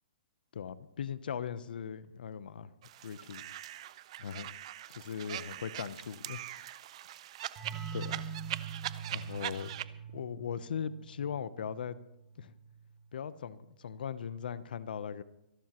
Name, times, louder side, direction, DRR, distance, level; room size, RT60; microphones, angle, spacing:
voice 1, 0.5-2.7 3.0-3.4 4.2-4.5 4.9-6.4 7.9-8.2 9.1-9.7 10.1-12.0 12.4-12.5 13.1-15.2, left 7 dB, 65° left, 16 dB, 0.8 m, -39 dB
sound 1, 2.8-9.8, right 13 dB, 35° right, 0.5 m, -42 dB
sound 2, 7.6-13.0, right 7 dB, 15° right, 2.0 m, -44 dB
25.0 x 12.5 x 3.0 m, 0.86 s
hypercardioid pair, 170°, 5 cm